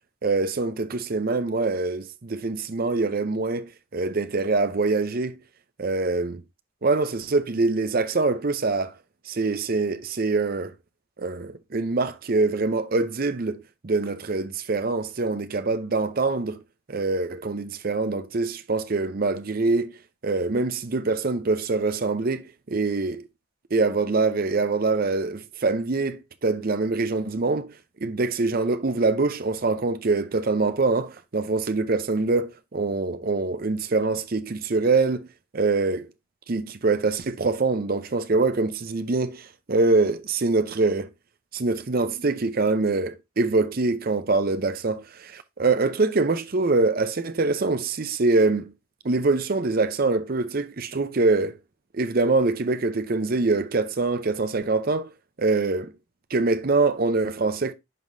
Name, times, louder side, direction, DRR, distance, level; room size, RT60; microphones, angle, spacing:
voice 1, 0.2-5.4 5.8-6.4 6.8-8.9 9.3-10.7 11.2-16.6 16.9-19.9 20.2-23.2 23.7-27.7 28.0-35.3 35.5-36.1 36.5-41.1 41.5-48.7 49.0-51.6 51.9-55.1 55.4-55.9 56.3-57.7, right 3 dB, 45° right, 0.6 m, -24 dB
11.0 x 3.7 x 2.6 m
head